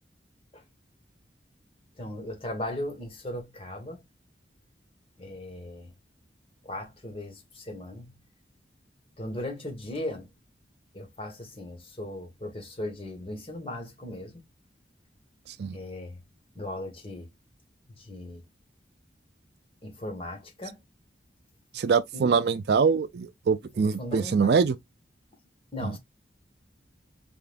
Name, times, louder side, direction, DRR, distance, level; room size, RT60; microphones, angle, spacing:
voice 1, 2.0-4.0 5.2-5.9 6.6-8.2 9.2-10.3 10.9-14.4 15.7-16.2 16.5-17.3 18.0-18.4 19.8-20.8 22.1-22.4 24.0-24.6 25.7-26.0, left 1 dB, 30° left, 1.5 m, -37 dB
voice 2, 15.5-15.8 21.7-24.8 25.8-26.0, right 5 dB, 65° right, 0.4 m, -24 dB
4.7 x 3.5 x 2.5 m
head